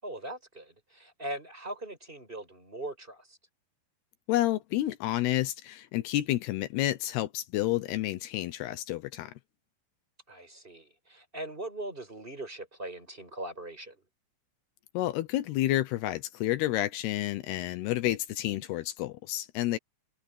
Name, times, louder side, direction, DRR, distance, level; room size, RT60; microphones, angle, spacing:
voice 1, 0.0-3.4 10.3-14.0, right 1 dB, 10° right, 7.2 m, -40 dB
voice 2, 4.3-9.3 14.9-19.8, left 15 dB, 75° left, 2.4 m, -30 dB
omnidirectional pair, 5.7 m